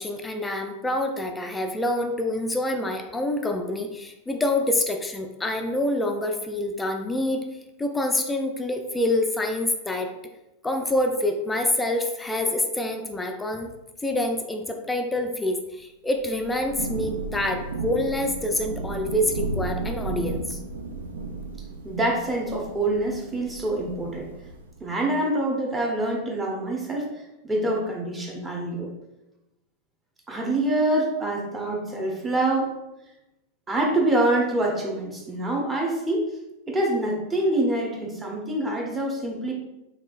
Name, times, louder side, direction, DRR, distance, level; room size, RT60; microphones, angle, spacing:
voice 1, 0.0-7.4 7.8-10.1 10.6-13.7 14.0-20.6, left 1 dB, 10° left, 4 dB, 0.3 m, -26 dB
Thunder / Rain, 16.2-24.8, right 3 dB, 65° right, 0.4 m, -34 dB
voice 2, 21.8-24.3 24.8-27.1 27.4-28.9 30.3-32.7 33.7-36.3 36.7-39.5, right 1 dB, 15° right, -1 dB, 0.8 m, -25 dB
3.6 x 3.4 x 2.4 m, 0.95 s
figure-of-eight pair, 90°, 0 cm